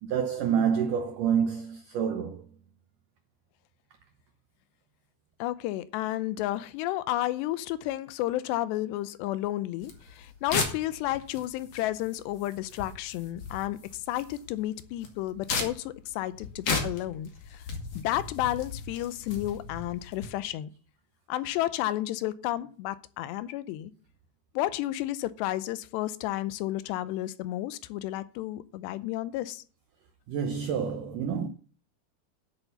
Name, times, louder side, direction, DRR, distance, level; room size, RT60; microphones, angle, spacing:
voice 1, 0.0-2.5 30.3-31.5, right 7 dB, 85° right, 1.9 m, -28 dB
voice 2, 5.4-13.8 14.1-17.6 18.0-20.7 21.3-23.9 24.6-29.6, left 15 dB, 80° left, 2.8 m, -32 dB
sound 1, 9.8-20.3, left 4 dB, 45° left, 2.7 m, -36 dB
10.5 x 8.2 x 7.0 m
omnidirectional pair, 5.0 m